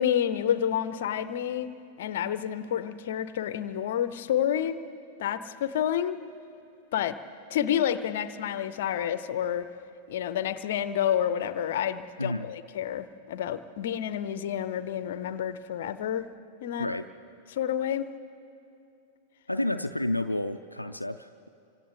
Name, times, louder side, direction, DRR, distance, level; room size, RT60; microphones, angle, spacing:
voice 1, 0.0-1.7 2.0-4.8 5.2-6.2 6.9-7.2 7.5-9.7 10.1-16.3 16.6-16.9 17.5-18.1, left 10 dB, 55° left, 14 dB, 0.7 m, -29 dB
voice 2, 19.5-21.5, left 1 dB, 85° left, 6 dB, 0.5 m, -30 dB
29.5 x 25.5 x 3.4 m, 2.7 s
figure-of-eight pair, 95°, 0 cm